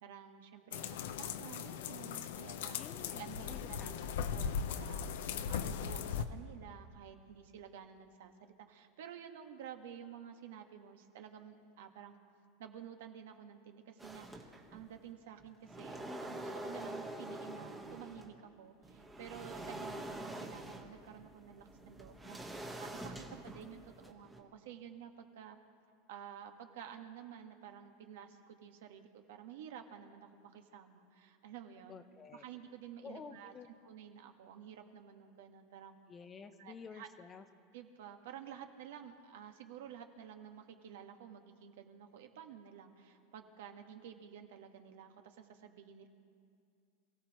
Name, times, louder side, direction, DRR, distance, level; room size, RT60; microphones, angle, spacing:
voice 1, 0.0-2.8 3.1-3.9 4.3-12.2 12.6-25.6 26.1-32.0 32.3-33.5 33.8-36.0 36.6-37.1 37.7-46.1, right 9 dB, 80° right, 5 dB, 1.5 m, -51 dB
sound 1, 0.7-6.3, left 7 dB, 75° left, 0.7 m, -39 dB
voice 2, 2.7-4.3 31.9-32.4 33.0-33.7 36.1-37.4, left 5 dB, 15° left, 10 dB, 0.5 m, -51 dB
sound 2, 14.0-15.0 15.4-18.4 18.8-24.4, right 1 dB, 5° right, 1.2 m, -46 dB
27.0 x 16.5 x 3.0 m, 2.3 s
supercardioid pair, 165°, 0 cm